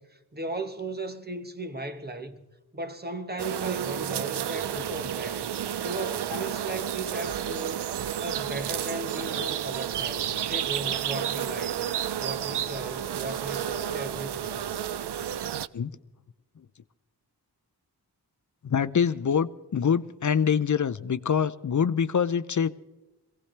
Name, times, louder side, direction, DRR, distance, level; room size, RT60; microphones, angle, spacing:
voice 1, 0.0-2.4 2.7-5.5 5.8-11.9 12.2-14.6, right 2 dB, 25° right, 1.3 m, -37 dB
sound 1, 3.4-15.7, right 10 dB, 85° right, 0.5 m, -31 dB
voice 2, 18.6-22.7, left 7 dB, 50° left, 0.6 m, -25 dB
22.5 x 17.0 x 3.4 m
wide cardioid pair, 90°, 40 cm